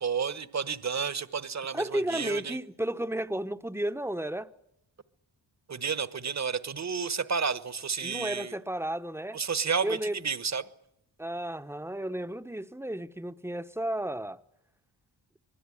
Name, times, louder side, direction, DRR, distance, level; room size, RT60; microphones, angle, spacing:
voice 1, 0.0-2.6 5.7-8.6 9.3-10.7, right 6 dB, 35° right, 1.3 m, -31 dB
voice 2, 1.7-4.5 8.0-9.4 9.8-10.2 11.2-14.4, right 1 dB, 5° right, 1.0 m, -33 dB
25.0 x 20.5 x 10.0 m
wide cardioid pair, 105°, 45 cm